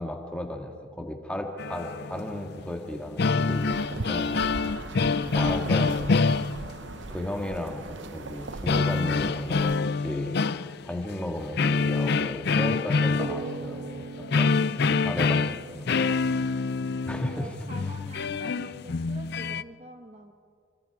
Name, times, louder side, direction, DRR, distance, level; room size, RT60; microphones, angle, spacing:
voice 1, 0.0-3.6 3.9-4.3 5.1-6.5 7.1-7.9 8.1-10.4 10.8-14.1 14.3-15.8 16.1-16.2 17.0-17.5, left 1 dB, 5° left, 2 dB, 1.9 m, -35 dB
sound 1, 1.6-2.7 3.0-7.0 8.7-11.2 11.5-19.6, left 4 dB, 55° left, 0.5 m, -26 dB
sound 2, 3.4-9.8, right 2 dB, 65° right, 0.9 m, -39 dB
sound 3, 13.2-16.6, right 3 dB, 80° right, 1.3 m, -40 dB
voice 2, 17.1-20.3, right 1 dB, 30° right, 5 dB, 1.1 m, -46 dB
28.5 x 25.5 x 4.9 m, 2.2 s
head